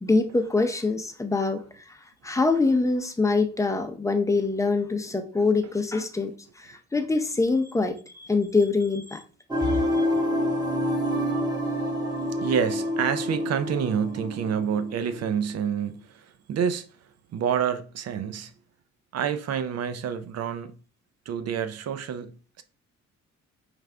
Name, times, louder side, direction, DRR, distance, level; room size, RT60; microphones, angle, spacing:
voice 1, 0.0-1.6 2.2-6.3 6.6-9.2 9.6-9.8, left 3 dB, 10° left, 0.6 m, -24 dB
sound 1, 9.5-15.4, equal, 15° right, 1.2 m, -27 dB
voice 2, 12.4-16.9 17.3-18.5 19.1-20.7 21.3-22.6, right 8 dB, 55° right, 0.5 m, -28 dB
4.7 x 2.5 x 3.3 m
cardioid pair, 90°, 30 cm